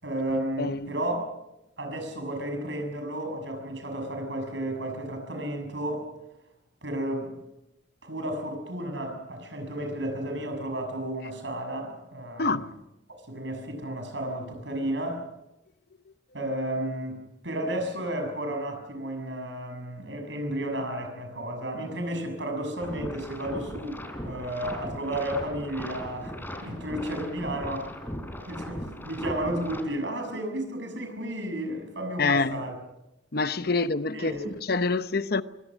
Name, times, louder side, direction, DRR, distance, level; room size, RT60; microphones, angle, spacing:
voice 1, 0.0-1.3 1.8-6.1 6.8-7.4 8.0-12.6 13.1-15.3 16.3-26.4 26.6-27.9 28.5-32.8 34.1-34.5, right 1 dB, 70° right, 6.6 m, -32 dB
voice 2, 0.6-0.9 12.4-12.7 32.2-32.6 33.3-34.3 34.6-35.4, left 3 dB, 55° left, 0.9 m, -26 dB
sound 1, 22.8-29.8, equal, 10° left, 3.5 m, -38 dB
26.0 x 24.0 x 6.3 m
head